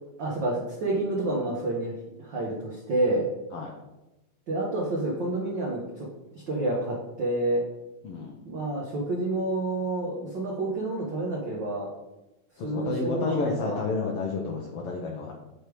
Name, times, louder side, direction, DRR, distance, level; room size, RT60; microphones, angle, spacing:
voice 1, 0.2-1.9 2.2-3.3 4.5-6.1 6.3-7.7 8.4-11.9 12.6-13.8, right 2 dB, 75° right, -2 dB, 1.0 m, -29 dB
voice 2, 8.0-8.4 12.6-15.3, left 4 dB, 85° left, 0 dB, 1.3 m, -30 dB
8.7 x 3.4 x 4.6 m, 0.98 s
omnidirectional pair, 3.6 m